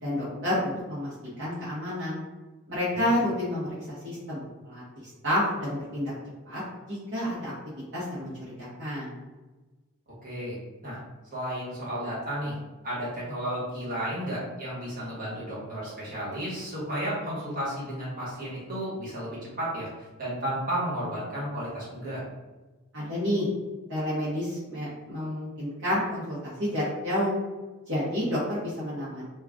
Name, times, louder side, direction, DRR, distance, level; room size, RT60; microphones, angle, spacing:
voice 1, 0.0-2.2 2.7-6.1 6.5-6.6 6.9-7.5 7.9-8.3 8.6-9.2 22.9-23.5 23.9-27.3 27.9-29.3, left 1 dB, 60° right, -9 dB, 0.8 m, -30 dB
voice 2, 10.2-11.0 11.3-12.5 12.8-19.9 20.2-22.2, equal, 40° right, -7 dB, 1.2 m, -33 dB
2.5 x 2.3 x 3.3 m, 1.2 s
head